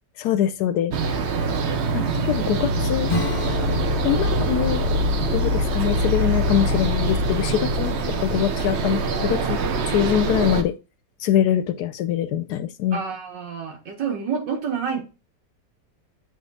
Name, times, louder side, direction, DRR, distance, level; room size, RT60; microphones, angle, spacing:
voice 1, 0.2-0.9 1.9-3.1 4.0-5.0 5.3-8.0 8.2-9.6 9.9-10.7 11.2-13.0, left 10 dB, 75° left, 1.0 m, -23 dB
sound 1, 0.9-10.6, right 1 dB, 55° right, 0.8 m, -23 dB
Acoustic guitar / Strum, 3.1-7.4, left 4 dB, 55° left, 0.5 m, -34 dB
voice 2, 12.9-15.0, right 6 dB, 85° right, 2.2 m, -28 dB
8.1 x 3.7 x 4.0 m
omnidirectional pair, 1.9 m